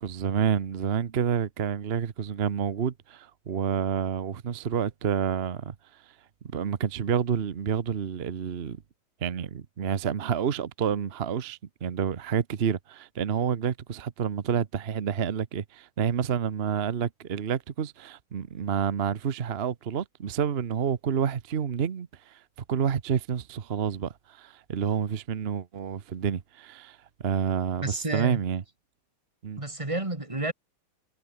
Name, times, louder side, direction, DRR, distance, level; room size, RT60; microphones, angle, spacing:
voice 1, 0.0-5.7 6.5-8.8 9.2-22.4 22.7-27.0 27.2-28.6 29.4-29.6, right 7 dB, 45° right, 0.8 m, -29 dB
voice 2, 27.8-28.4 29.6-30.5, right 2 dB, 15° right, 2.3 m, -30 dB
omnidirectional pair, 2.3 m